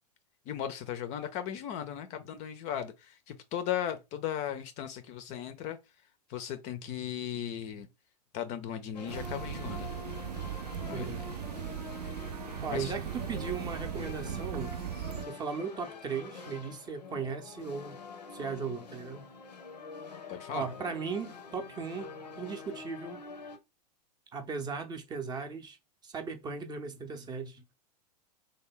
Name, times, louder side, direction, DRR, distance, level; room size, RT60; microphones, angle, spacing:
voice 1, 0.5-5.8 6.3-7.9 8.3-9.9 10.8-11.1 12.7-12.9 20.3-20.7, left 10 dB, 35° left, 0.5 m, -37 dB
sound 1, 8.9-23.6, left 5 dB, 80° left, 0.7 m, -46 dB
sound 2, 9.1-15.3, right 9 dB, 70° right, 0.5 m, -38 dB
voice 2, 10.9-11.3 12.6-14.7 15.3-18.0 18.3-19.3 20.5-22.1 22.4-23.2 24.3-25.8 26.0-27.6, right 5 dB, 20° right, 0.6 m, -37 dB
3.3 x 2.1 x 3.6 m
figure-of-eight pair, 95°, 21 cm